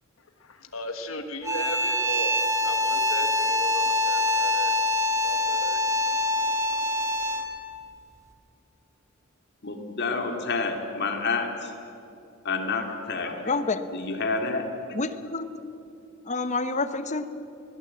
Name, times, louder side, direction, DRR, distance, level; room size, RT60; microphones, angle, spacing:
voice 1, 0.4-2.3 2.6-4.7 5.2-5.8, left 2 dB, 75° left, 6 dB, 1.4 m, -36 dB
sound 1, 1.4-7.6, left 1 dB, 15° right, 1.6 m, -25 dB
voice 2, 9.6-11.7 12.4-13.4 13.9-14.7, left 4 dB, 55° left, 4 dB, 2.4 m, -28 dB
voice 3, 13.5-14.0 14.9-15.7 16.3-17.3, left 3 dB, 35° left, 10 dB, 0.9 m, -28 dB
21.0 x 16.5 x 7.7 m, 2.7 s
head